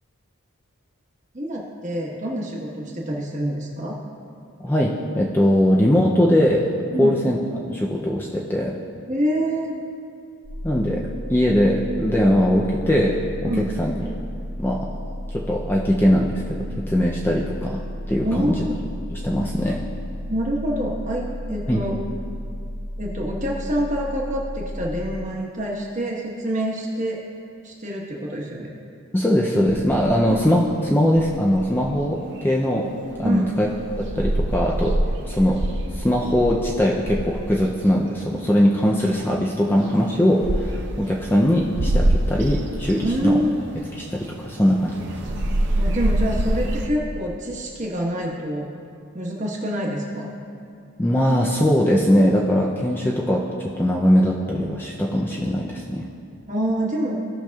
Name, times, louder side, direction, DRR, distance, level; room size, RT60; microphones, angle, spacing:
voice 1, 1.3-4.0 6.9-7.1 9.1-9.7 13.4-13.7 18.2-18.8 20.3-22.0 23.0-27.2 27.6-28.7 33.2-33.5 43.0-43.6 45.8-48.7 49.1-50.3 56.5-57.2, equal, 35° right, -2 dB, 1.2 m, -26 dB
voice 2, 4.6-6.7 7.0-7.4 7.7-8.8 10.6-13.9 14.6-14.8 15.3-17.8 18.1-18.7 19.1-19.8 21.7-21.8 29.1-32.9 33.2-33.7 34.2-35.0 35.2-35.6 35.9-43.4 44.0-45.0 51.0-56.1, equal, 10° left, -2 dB, 0.4 m, -20 dB
sound 1, 10.4-25.2, equal, 80° left, 1.1 m, -33 dB
sound 2, 29.7-30.7 31.2-32.2 32.6-38.2 38.5-38.6 38.8-46.9, right 1 dB, 50° right, 0.6 m, -26 dB
16.5 x 5.8 x 2.3 m, 2.5 s
head